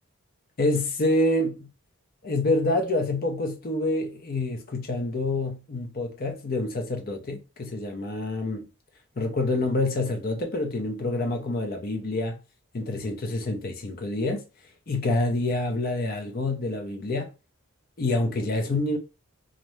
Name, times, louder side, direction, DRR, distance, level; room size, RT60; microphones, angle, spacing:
voice 1, 0.6-1.7 2.2-8.7 9.2-12.4 12.7-14.4 14.9-17.3 18.0-19.0, left 2 dB, 40° left, 0.5 m, -27 dB
2.5 x 2.1 x 2.9 m
head